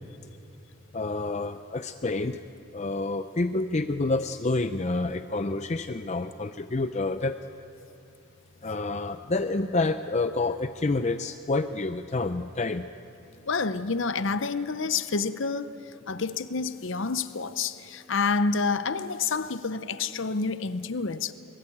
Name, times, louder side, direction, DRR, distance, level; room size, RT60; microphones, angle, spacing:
voice 1, 0.9-2.4 2.7-7.4 8.6-12.9, left 3 dB, 30° left, 10 dB, 0.5 m, -28 dB
voice 2, 13.4-21.3, left 4 dB, 60° left, 13 dB, 0.7 m, -28 dB
23.0 x 21.0 x 8.6 m, 2.8 s
head